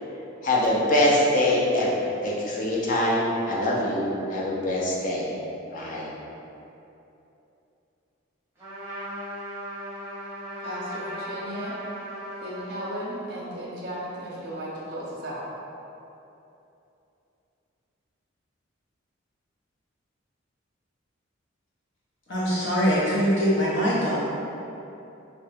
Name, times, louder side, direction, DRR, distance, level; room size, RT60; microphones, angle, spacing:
voice 1, 0.4-5.3 5.7-6.1, left 1 dB, 40° left, -4 dB, 0.4 m, -24 dB
Trumpet, 8.6-13.1, equal, 10° right, 0.8 m, -37 dB
voice 2, 10.6-11.7 12.4-15.4, equal, 45° right, -6 dB, 0.5 m, -35 dB
voice 3, 22.3-24.2, equal, 60° left, -8 dB, 0.8 m, -23 dB
2.9 x 2.2 x 3.2 m, 2.9 s
head